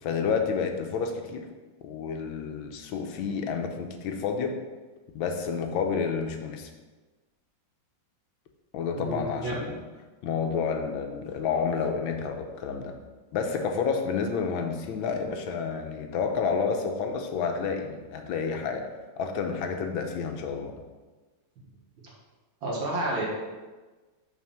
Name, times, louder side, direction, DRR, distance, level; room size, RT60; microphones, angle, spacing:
voice 1, 0.0-1.5 1.8-4.6 5.1-6.7 8.7-9.8 10.2-12.9 13.3-18.9 19.2-20.7, left 5 dB, 85° left, 4 dB, 1.5 m, -30 dB
voice 2, 9.0-9.6 22.6-23.3, right 1 dB, 75° right, -3 dB, 2.2 m, -30 dB
6.2 x 4.1 x 5.7 m, 1.3 s
omnidirectional pair, 2.1 m